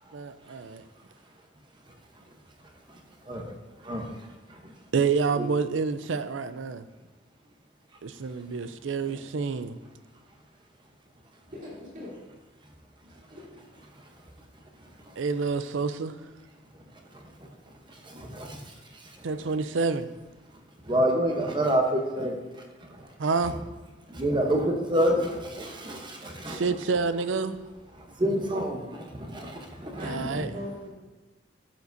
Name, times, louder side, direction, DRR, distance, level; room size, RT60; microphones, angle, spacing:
voice 1, 0.1-0.8 4.9-6.9 8.0-9.8 15.2-16.1 19.2-20.1 23.2-23.6 26.5-27.6 30.0-30.6, right 4 dB, 80° right, 11 dB, 0.5 m, -28 dB
voice 2, 11.6-12.1 13.3-13.4 29.9-30.9, equal, 45° right, -7 dB, 3.1 m, -39 dB
voice 3, 18.0-18.6 20.9-22.4 23.0-23.1 24.1-26.7 28.0-30.5, right 1 dB, 25° right, 2 dB, 0.9 m, -28 dB
12.5 x 7.2 x 2.7 m, 1.2 s
head